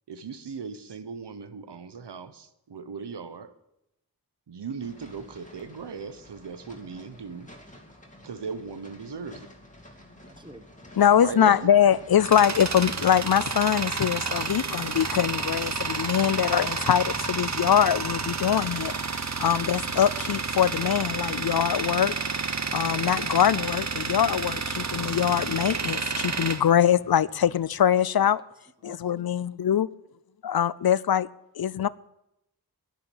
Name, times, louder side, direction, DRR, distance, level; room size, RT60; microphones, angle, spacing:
voice 1, 0.1-3.5 4.5-7.5 8.2-9.5 11.2-11.7, right 5 dB, 90° right, 1.0 m, -38 dB
sound 1, 4.8-19.0, left 1 dB, 20° left, 2.4 m, -48 dB
voice 2, 10.3-10.6 28.2-28.3 28.9-29.3, right 1 dB, 10° right, 1.4 m, -48 dB
voice 3, 11.0-18.9 19.4-22.1 22.7-28.4 28.8-29.9 30.4-31.3 31.6-31.9, left 9 dB, 65° left, 0.5 m, -23 dB
Tools, 11.7-27.5, right 4 dB, 45° right, 0.9 m, -30 dB
11.5 x 10.5 x 8.5 m
wide cardioid pair, 80°, 40 cm